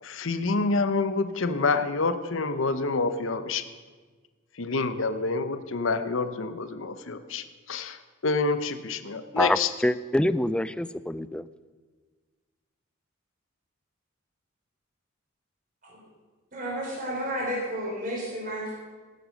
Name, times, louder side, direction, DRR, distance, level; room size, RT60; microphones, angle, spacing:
voice 1, 0.0-3.6 4.6-9.7, left 3 dB, 70° left, 10 dB, 0.9 m, -27 dB
voice 2, 9.4-11.5, left 1 dB, 5° left, 15 dB, 0.3 m, -26 dB
voice 3, 16.5-18.7, equal, 40° right, -3 dB, 3.5 m, -31 dB
18.0 x 8.0 x 6.4 m, 1.4 s
head